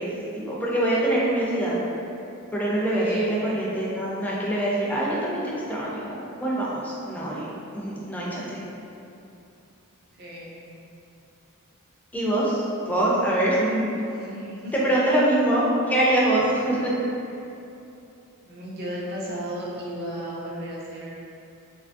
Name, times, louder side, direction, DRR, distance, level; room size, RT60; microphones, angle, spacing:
voice 1, 0.0-1.8 2.5-8.6 12.1-13.9 14.7-16.9, right 1 dB, 5° left, -6 dB, 0.4 m, -24 dB
voice 2, 2.9-3.4 10.2-10.5 14.2-14.9 18.5-21.2, equal, 45° right, -6 dB, 0.5 m, -34 dB
2.9 x 2.3 x 2.5 m, 2.8 s
head